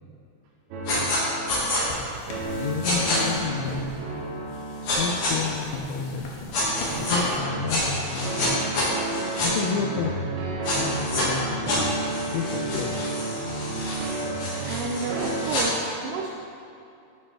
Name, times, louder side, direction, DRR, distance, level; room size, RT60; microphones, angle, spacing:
sound 1, 0.7-15.4, right 3 dB, 75° right, 3.3 m, -32 dB
sound 2, 0.9-1.2 1.5-1.8 2.8-3.2 4.9-5.3 6.5-7.2 7.7-9.5 10.6-11.2 11.7-15.6, left 1 dB, 55° left, 2.9 m, -28 dB
sound 3, 1.9-7.4, left 2 dB, 75° left, 2.2 m, -40 dB
voice 1, 2.2-3.9 4.8-6.4 6.8-8.7 9.4-10.2 10.5-13.1, left 6 dB, 90° left, 2 dB, 2.6 m, -31 dB
voice 2, 14.6-16.3, right 4 dB, 90° right, -1 dB, 2.4 m, -30 dB
13.5 x 4.6 x 4.3 m, 2.6 s
omnidirectional pair, 5.7 m